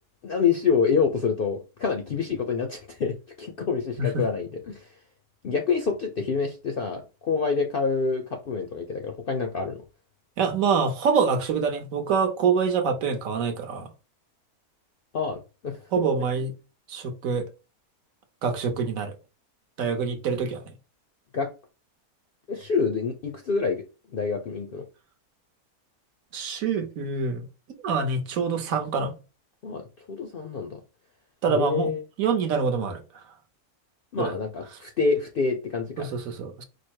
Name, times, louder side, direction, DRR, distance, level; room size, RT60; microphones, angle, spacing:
voice 1, 0.2-4.9 5.4-9.8 15.1-16.1 21.3-21.5 22.5-23.8 24.1-24.8 29.6-29.8 30.1-30.8 31.5-32.0 34.1-36.1, left 5 dB, 60° left, 0.5 m, -27 dB
voice 2, 10.4-13.9 15.9-16.5 16.9-17.4 18.4-19.1 19.8-20.6 26.3-27.4 27.8-29.1 31.4-31.9 32.2-33.0 34.2-34.3 36.0-36.6, right 5 dB, 65° right, 1.1 m, -25 dB
4.9 x 2.1 x 4.5 m
omnidirectional pair, 1.6 m